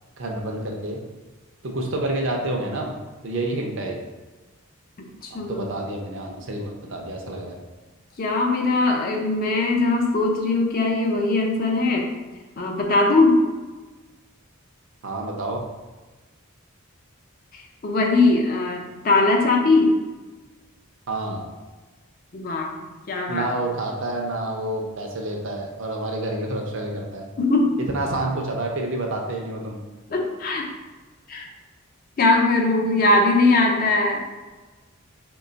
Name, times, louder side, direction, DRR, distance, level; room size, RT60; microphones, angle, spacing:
voice 1, 0.2-1.0 1.6-2.9 3.2-4.0 5.5-7.6 15.0-15.6 21.1-21.5 23.3-27.3 27.9-29.8, right 2 dB, 60° right, 1 dB, 0.5 m, -28 dB
voice 2, 5.0-5.7 8.2-12.1 12.6-13.4 17.5-20.0 22.3-22.7 23.1-23.4 27.4-27.8 30.1-30.7 31.3-31.5 32.2-34.2, left 2 dB, 40° left, 1 dB, 0.5 m, -20 dB
3.1 x 2.2 x 3.9 m, 1.2 s
head